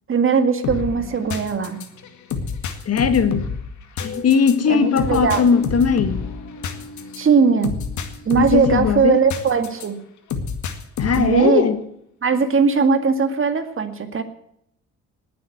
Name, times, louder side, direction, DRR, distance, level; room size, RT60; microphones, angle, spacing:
voice 1, 0.1-1.8 4.7-5.4 7.2-7.8 8.3-10.0 11.2-11.7 12.2-14.2, right 5 dB, 45° right, 2.0 m, -19 dB
sound 1, 0.6-9.9 10.3-11.4, left 5 dB, 70° left, 2.1 m, -29 dB
voice 2, 2.8-3.5 4.0-6.3 8.4-9.2 11.0-11.8, left 6 dB, 55° left, 1.7 m, -19 dB
19.0 x 7.9 x 8.0 m
cardioid pair, 90°, 30 cm